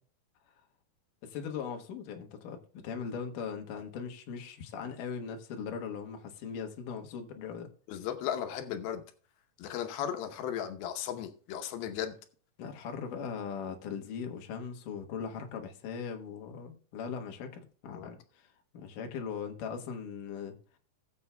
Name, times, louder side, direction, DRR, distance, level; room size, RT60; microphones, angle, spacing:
voice 1, 1.2-7.7 12.6-18.5 18.7-20.5, left 6 dB, 70° left, 2.7 m, -39 dB
voice 2, 7.9-9.0 9.6-12.1 17.9-18.1, left 9 dB, 90° left, 2.8 m, -36 dB
20.0 x 7.0 x 2.2 m
omnidirectional pair, 4.2 m